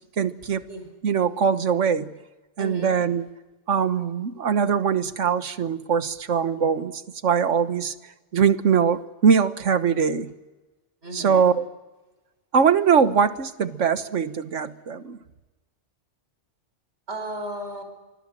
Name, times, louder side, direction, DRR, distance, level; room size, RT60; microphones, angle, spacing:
voice 1, 0.2-0.6 1.0-2.1 2.6-3.3 3.7-7.9 8.3-10.3 11.1-11.6 12.5-15.2, right 6 dB, 90° right, 1.5 m, -22 dB
voice 2, 2.6-3.0 11.0-11.5 17.1-17.8, right 1 dB, 70° right, 5.8 m, -34 dB
26.0 x 25.0 x 7.5 m
omnidirectional pair, 1.2 m